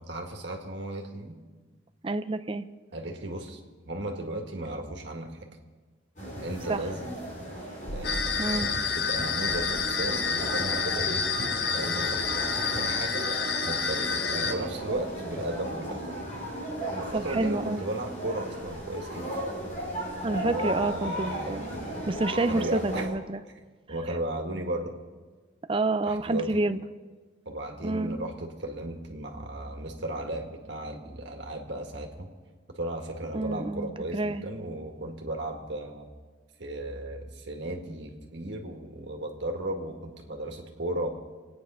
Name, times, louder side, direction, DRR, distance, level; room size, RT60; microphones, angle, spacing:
voice 1, 0.1-1.4 2.9-3.6 3.9-5.5 6.4-7.1 7.9-11.2 11.6-13.3 13.6-16.3 17.0-19.3 20.3-21.9 22.5-23.1 23.9-24.9 26.0-26.6 27.5-32.3 32.7-36.1 36.6-41.2, right 1 dB, 65° right, 2 dB, 2.0 m, -35 dB
voice 2, 2.0-2.7 6.7-6.8 8.4-8.7 17.1-17.8 20.2-21.7 22.1-23.4 25.7-26.8 27.8-28.2 33.3-34.4, right 2 dB, 25° right, 11 dB, 0.5 m, -28 dB
sound 1, 6.2-23.1, right 1 dB, 40° left, 3.9 m, -36 dB
sound 2, 8.0-14.5, left 5 dB, 55° left, 1.0 m, -29 dB
25.5 x 9.6 x 5.6 m, 1.4 s
head